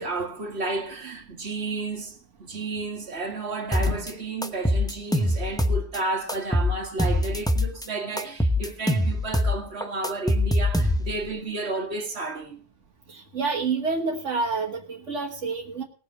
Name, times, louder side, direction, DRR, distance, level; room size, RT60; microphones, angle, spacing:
voice 1, 0.0-12.6, right 3 dB, 65° right, 2.0 m, -32 dB
sound 1, 3.7-4.1 4.4-6.0 6.3-7.9 8.2-11.3, left 1 dB, 5° left, 0.8 m, -23 dB
voice 2, 13.1-15.8, right 4 dB, 90° right, 1.8 m, -28 dB
18.0 x 6.8 x 6.2 m
omnidirectional pair, 1.2 m